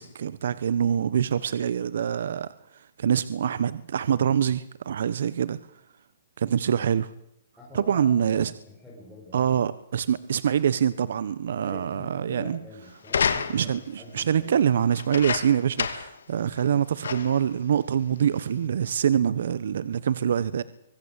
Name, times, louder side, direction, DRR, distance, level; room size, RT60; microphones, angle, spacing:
voice 1, 0.0-2.5 3.0-5.6 6.4-7.1 7.7-8.5 9.3-12.6 13.5-20.6, right 8 dB, 75° right, 1.2 m, -25 dB
voice 2, 7.6-9.6 11.6-14.6 16.4-16.5 19.0-19.1, left 2 dB, 5° left, 7.8 m, -45 dB
sound 1, 13.0-13.9 14.9-16.2 16.6-16.7 17.0-17.5 18.2-18.3, left 6 dB, 85° left, 2.6 m, -29 dB
25.0 x 18.0 x 8.4 m
hypercardioid pair, 145°, 0 cm